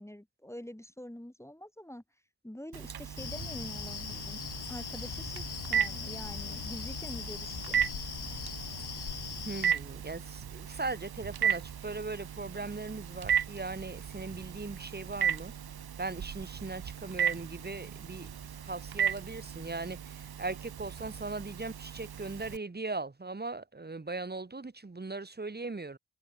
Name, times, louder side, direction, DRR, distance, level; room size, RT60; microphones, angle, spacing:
voice 1, 0.0-2.0 2.4-4.4 4.7-7.9, left 1 dB, 5° left, 3.0 m, -46 dB
Telephone, 2.7-22.6, right 8 dB, 65° right, 1.0 m, -36 dB
sound 1, 3.2-9.7, left 7 dB, 70° left, 1.5 m, -40 dB
voice 2, 9.4-15.5 16.0-18.3 18.6-26.0, right 3 dB, 25° right, 1.5 m, -39 dB
open air
wide cardioid pair, 115°, 41 cm